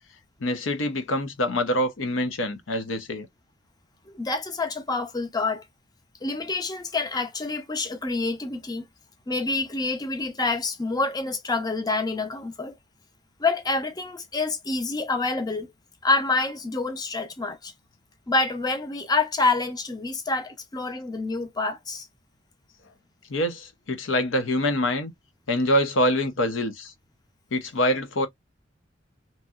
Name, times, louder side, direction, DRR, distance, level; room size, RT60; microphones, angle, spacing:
voice 1, 0.4-3.3 23.3-25.1 25.5-26.9 27.5-28.3, left 1 dB, 85° left, 0.6 m, -25 dB
voice 2, 4.1-5.6 6.2-8.9 9.3-12.8 13.4-15.7 16.0-17.7 18.3-22.1, left 3 dB, 20° left, 0.5 m, -27 dB
3.0 x 2.7 x 2.3 m
head